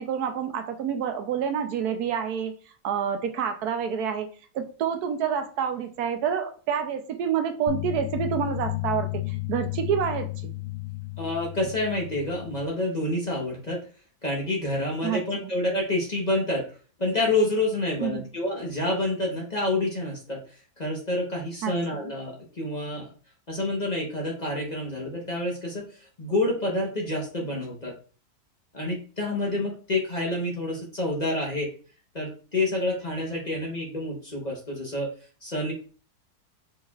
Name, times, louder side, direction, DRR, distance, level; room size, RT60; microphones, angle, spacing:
voice 1, 0.0-2.5 2.8-4.3 4.5-10.5 15.0-15.5 18.0-18.3 21.6-22.1, right 8 dB, 75° right, 7 dB, 1.1 m, -28 dB
sound 1, 7.7-12.7, left 18 dB, 70° left, 0.7 m, -33 dB
voice 2, 11.2-13.8 14.2-16.7 17.0-20.4 20.8-23.1 23.5-25.9 26.2-27.9 28.7-31.7 32.1-35.1 35.4-35.7, left 2 dB, 30° left, -1 dB, 0.9 m, -28 dB
4.7 x 4.1 x 2.4 m, 0.39 s
omnidirectional pair, 1.7 m